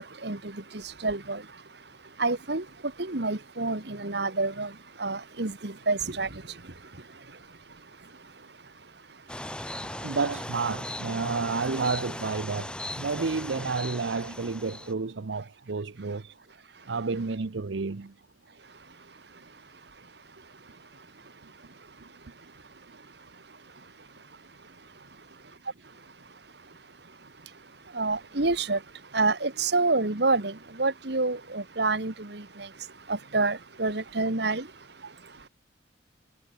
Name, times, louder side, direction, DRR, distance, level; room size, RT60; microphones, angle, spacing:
voice 1, 0.0-10.2 16.7-16.9 18.6-35.5, right 3 dB, 60° right, 1.8 m, -32 dB
sound 1, 9.3-14.9, left 1 dB, 5° left, 3.3 m, -38 dB
voice 2, 9.8-16.2 16.9-18.1 35.0-35.1, right 4 dB, 85° right, 0.7 m, -30 dB
head